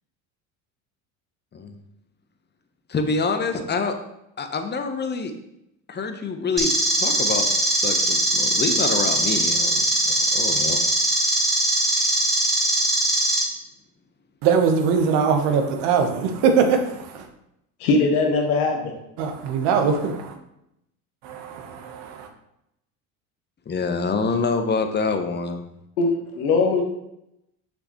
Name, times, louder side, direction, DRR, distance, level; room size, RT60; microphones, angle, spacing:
voice 1, 2.9-3.9 4.4-5.3 5.9-7.5 7.8-10.8 23.7-25.6, left 4 dB, 25° left, 0.9 m, -26 dB
sound 1, 6.6-13.4, right 1 dB, ahead, 1.8 m, -21 dB
voice 2, 14.4-16.8 19.2-20.0 21.3-21.4, right 6 dB, 65° right, 1.2 m, -20 dB
voice 3, 17.8-18.9 26.0-26.8, left 3 dB, 75° left, 1.5 m, -20 dB
6.3 x 6.1 x 3.0 m
hypercardioid pair, 80°, 44 cm